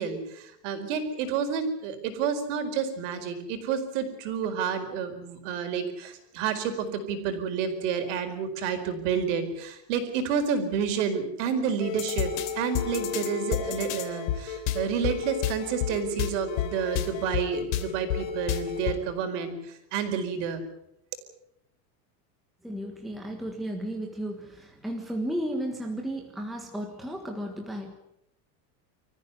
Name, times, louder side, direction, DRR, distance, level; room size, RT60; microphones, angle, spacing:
voice 1, 0.0-20.6, right 6 dB, 45° right, 6 dB, 4.6 m, -30 dB
sound 1, 11.8-18.9, left 10 dB, 55° left, 3.2 m, -31 dB
voice 2, 22.6-27.9, right 1 dB, ahead, 1 dB, 1.6 m, -34 dB
26.0 x 14.5 x 9.7 m, 0.80 s
supercardioid pair, 180°, 49 cm